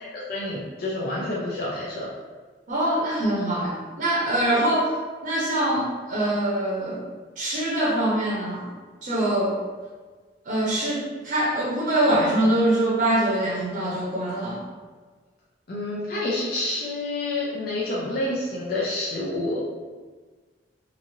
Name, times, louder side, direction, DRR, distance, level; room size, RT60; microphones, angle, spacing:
voice 1, 0.0-2.1 4.5-4.6 15.7-19.6, left 2 dB, 55° left, -6 dB, 0.5 m, -28 dB
voice 2, 2.7-4.9 5.2-7.0 7.4-8.7 9.0-9.6 10.4-14.6, right 1 dB, 45° right, -6 dB, 0.6 m, -24 dB
3.1 x 2.6 x 2.6 m, 1.4 s
head